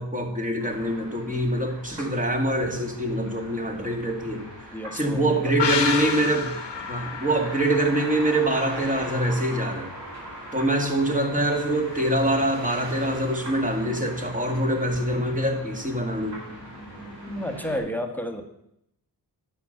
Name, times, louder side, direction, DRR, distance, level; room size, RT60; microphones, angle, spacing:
voice 1, 0.0-4.5 4.9-6.5 6.9-9.9 10.5-16.4, right 1 dB, 20° right, 2 dB, 2.3 m, -24 dB
sound 1, 0.6-17.8, equal, 80° right, 5.1 m, -40 dB
voice 2, 4.7-5.5 17.3-18.4, equal, 5° left, 5 dB, 1.5 m, -31 dB
sound 2, 5.6-9.1 9.4-9.5, left 6 dB, 85° left, 1.4 m, -30 dB
10.0 x 6.9 x 6.8 m, 0.79 s
cardioid pair, 65°, 41 cm